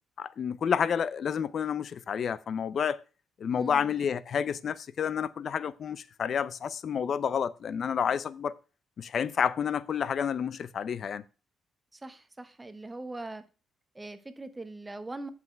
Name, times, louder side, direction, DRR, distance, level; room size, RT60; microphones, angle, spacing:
voice 1, 0.2-3.0 3.4-8.5 9.0-11.2, left 7 dB, 55° left, 0.6 m, -30 dB
voice 2, 3.6-4.0 11.9-13.4 13.9-15.3, right 2 dB, 15° right, 1.1 m, -41 dB
7.7 x 5.9 x 4.5 m
cardioid pair, 90°, 0 cm